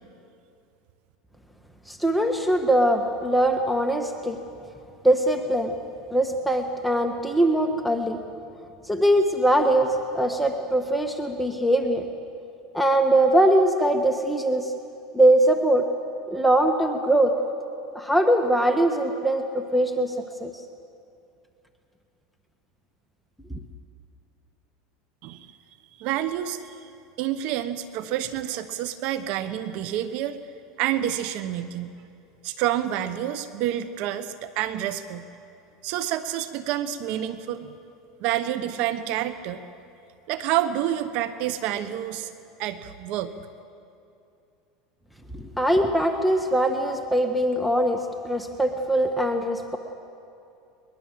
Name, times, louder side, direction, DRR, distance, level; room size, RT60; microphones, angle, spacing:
voice 1, 1.9-4.4 5.0-5.8 6.1-8.2 8.9-12.0 12.7-14.7 15.1-15.8 16.3-17.3 17.9-20.1 20.4-20.5 45.3-49.8, right 1 dB, ahead, 4 dB, 1.4 m, -22 dB
voice 2, 26.0-26.9 27.2-30.4 30.8-31.9 32.4-35.2 35.8-37.7 38.2-39.6 40.3-42.3 42.6-43.3, right 12 dB, 60° right, 12 dB, 1.1 m, -28 dB
22.0 x 21.5 x 7.7 m, 2.6 s
supercardioid pair, 110°, 2 cm